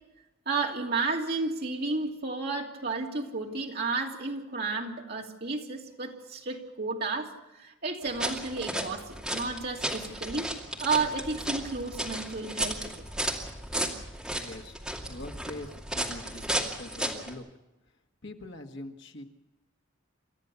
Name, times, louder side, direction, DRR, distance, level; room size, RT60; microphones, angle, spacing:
voice 1, 0.5-10.5 10.8-12.8, right 3 dB, 50° right, 2.8 m, -32 dB
sound 1, 8.0-17.3, right 1 dB, 5° right, 2.4 m, -34 dB
voice 2, 14.3-14.8 15.1-17.5 18.2-19.2, left 1 dB, 60° left, 1.7 m, -43 dB
28.5 x 13.5 x 7.0 m
head